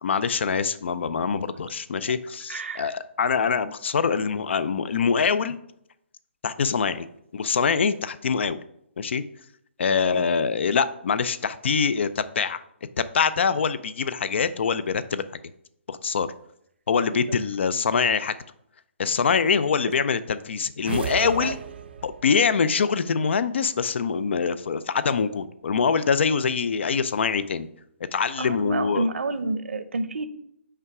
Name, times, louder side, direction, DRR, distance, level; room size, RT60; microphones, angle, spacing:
voice 1, 0.0-5.6 6.4-7.1 7.3-8.6 9.0-9.2 9.8-12.6 13.0-15.2 15.9-16.3 16.9-18.4 19.0-21.6 22.0-27.7 28.1-29.1, left 6 dB, 60° left, 14 dB, 0.5 m, -24 dB
voice 2, 2.5-2.9 21.4-21.5 22.4-22.6 28.4-30.3, right 2 dB, 80° right, 11 dB, 0.8 m, -29 dB
Game Reward, 20.9-22.4, right 6 dB, 55° right, 0.5 m, -33 dB
5.6 x 4.8 x 4.8 m, 0.74 s
hypercardioid pair, 160°, 7 cm